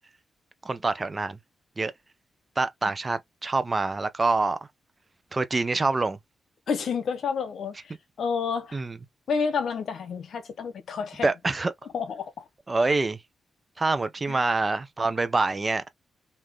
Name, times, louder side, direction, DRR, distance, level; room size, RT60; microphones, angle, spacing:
voice 1, 0.6-1.4 1.8-1.9 2.6-4.6 5.3-6.2 8.7-9.0 11.2-11.7 12.7-13.2 13.8-15.9, right 3 dB, 35° right, 0.7 m, -26 dB
voice 2, 6.7-7.8 8.2-8.8 9.3-11.3 11.9-12.4 14.3-14.4, left 6 dB, 70° left, 1.0 m, -29 dB
3.7 x 2.7 x 3.2 m
supercardioid pair, 55°, 0 cm